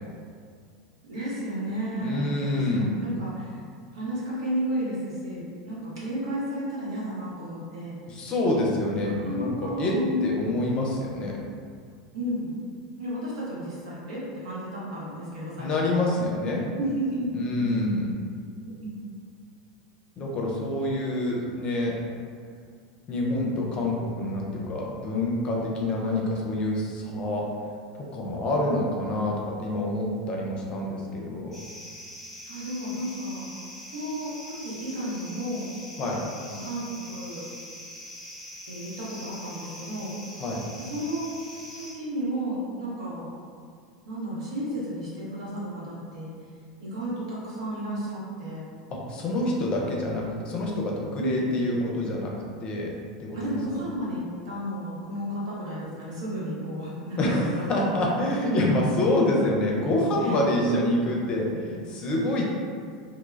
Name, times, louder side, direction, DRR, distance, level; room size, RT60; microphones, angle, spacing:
voice 1, 1.1-3.5 3.9-7.9 9.0-10.2 12.1-12.5 13.0-16.0 16.8-17.2 17.5-17.8 18.6-19.0 23.3-23.5 27.1-27.2 32.4-33.5 33.9-35.7 36.5-37.4 38.7-40.1 40.8-41.4 41.7-43.3 44.1-46.3 46.8-48.7 51.2-51.5 53.3-57.9 58.5-58.6 59.3-59.4 60.2-61.0, right 1 dB, 70° right, -7 dB, 0.9 m, -32 dB
voice 2, 2.0-3.0 8.1-9.9 10.2-11.4 15.6-16.7 17.3-18.1 20.2-22.0 23.1-27.5 28.0-31.6 36.0-36.2 40.4-40.7 48.9-52.3 52.6-52.9 53.2-53.6 57.2-62.4, left 1 dB, 35° left, -2 dB, 0.5 m, -27 dB
sound 1, 31.5-41.9, equal, ahead, 1.0 m, -43 dB
2.2 x 2.0 x 3.2 m, 2.2 s
figure-of-eight pair, 85°, 3 cm